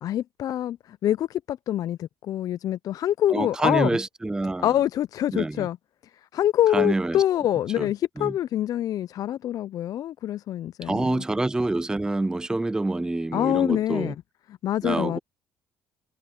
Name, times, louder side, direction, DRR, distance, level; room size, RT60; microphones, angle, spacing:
voice 1, 0.0-3.9 4.6-5.8 6.3-11.2 13.3-14.1 14.6-15.2, left 12 dB, 60° left, 0.5 m, -25 dB
voice 2, 3.3-4.7 5.3-5.7 6.7-7.2 7.8-7.9 8.2-8.3 10.8-14.1 14.8-15.2, right 2 dB, 10° right, 0.4 m, -26 dB
supercardioid pair, 70°, 7 cm